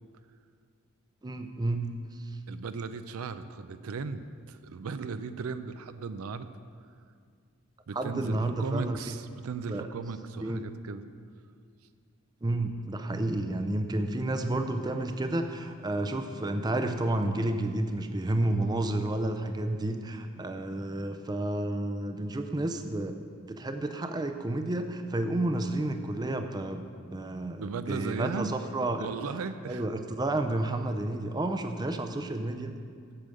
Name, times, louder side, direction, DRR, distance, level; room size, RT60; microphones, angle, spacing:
voice 1, 1.2-1.9 2.1-2.4 7.9-9.1 9.7-9.9 10.4-10.6 12.4-26.8 27.1-29.1 29.7-32.7, right 1 dB, 20° right, 7 dB, 0.5 m, -31 dB
voice 2, 2.5-6.5 7.9-11.0 27.6-28.6 29.0-29.9, right 5 dB, 80° right, 11 dB, 0.4 m, -36 dB
8.5 x 6.6 x 7.7 m, 2.2 s
head